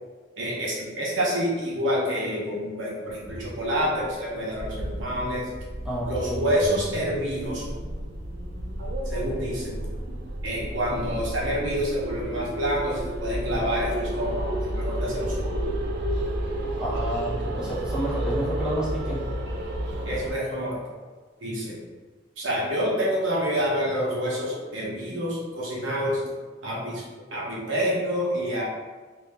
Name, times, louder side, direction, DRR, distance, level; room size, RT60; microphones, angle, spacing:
voice 1, 0.4-5.5 6.1-7.7 9.1-9.9 10.4-15.7 20.0-20.8 21.4-21.9 22.4-26.2 26.6-27.0 27.3-28.6, equal, 85° right, -5 dB, 1.0 m, -28 dB
sound 1, 3.1-20.3, right 1 dB, 60° right, 0.5 m, -31 dB
voice 2, 5.8-6.4 16.8-19.2, right 1 dB, 5° right, -9 dB, 0.9 m, -30 dB
2.8 x 2.7 x 3.4 m, 1.4 s
head